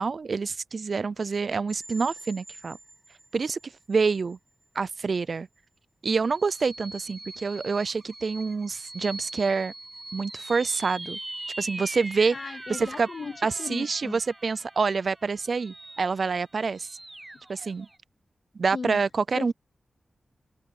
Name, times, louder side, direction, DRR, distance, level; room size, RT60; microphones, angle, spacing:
voice 1, 0.0-2.8 3.3-4.4 4.8-5.5 6.0-9.7 10.1-11.2 11.6-12.4 12.7-13.1 13.4-16.9 17.5-17.9 18.6-19.5, right 4 dB, 55° right, 0.3 m, -27 dB
sound 1, 1.7-3.6 4.1-4.2 6.2-18.0, right 1 dB, 15° right, 0.6 m, -42 dB
voice 2, 12.3-14.2 18.7-19.0 19.3-19.5, left 5 dB, 60° left, 0.6 m, -37 dB
open air
wide cardioid pair, 120°, 0 cm